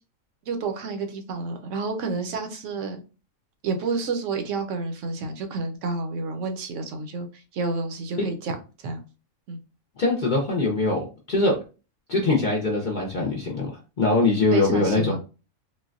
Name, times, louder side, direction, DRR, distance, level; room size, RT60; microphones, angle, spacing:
voice 1, 0.5-3.0 3.6-8.6 8.8-9.0 9.5-9.6 14.5-15.2, right 4 dB, 65° right, 6 dB, 0.9 m, -29 dB
voice 2, 10.0-11.6 12.1-15.1, left 3 dB, 55° left, -2 dB, 0.5 m, -23 dB
3.9 x 2.1 x 2.4 m, 0.33 s
omnidirectional pair, 1.5 m